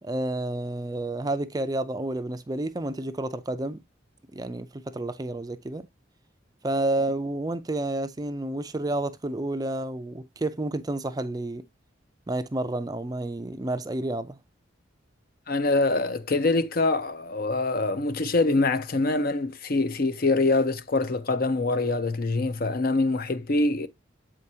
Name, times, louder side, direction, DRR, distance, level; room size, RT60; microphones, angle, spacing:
voice 1, 0.0-3.8 4.3-5.9 6.6-11.7 12.3-14.4, right 2 dB, 20° right, 0.4 m, -30 dB
voice 2, 15.5-23.9, left 2 dB, 50° left, 0.6 m, -24 dB
7.5 x 4.7 x 2.7 m
head